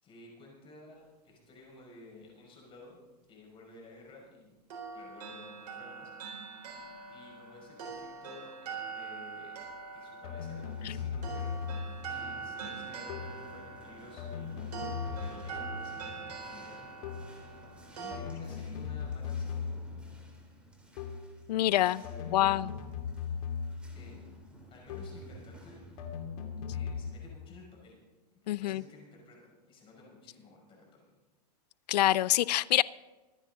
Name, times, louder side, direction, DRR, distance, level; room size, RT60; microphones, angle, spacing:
voice 1, 0.0-3.0 3.3-4.6 4.9-6.1 7.1-9.5 9.9-11.6 12.1-14.8 15.0-16.8 18.0-19.9 21.7-22.6 23.9-24.2 24.7-25.8 26.7-28.0 28.3-31.0, left 2 dB, 25° left, -1 dB, 5.5 m, -54 dB
sound 1, 4.7-18.2, right 5 dB, 80° right, 4.5 m, -43 dB
sound 2, 10.2-12.1 13.1-13.5 14.2-16.1 17.0-17.4 18.1-20.0 21.0-21.4 22.0-24.0 24.9-25.3 26.0-27.1, left 6 dB, 60° left, 2.4 m, -38 dB
sound 3, 10.3-27.7, equal, 5° right, 3.0 m, -55 dB
voice 2, 21.5-22.0 22.3-22.7 28.5-28.8 31.9-32.8, left 14 dB, 75° left, 21 dB, 0.5 m, -26 dB
24.0 x 10.0 x 4.0 m, 1.2 s
hypercardioid pair, 140°, 21 cm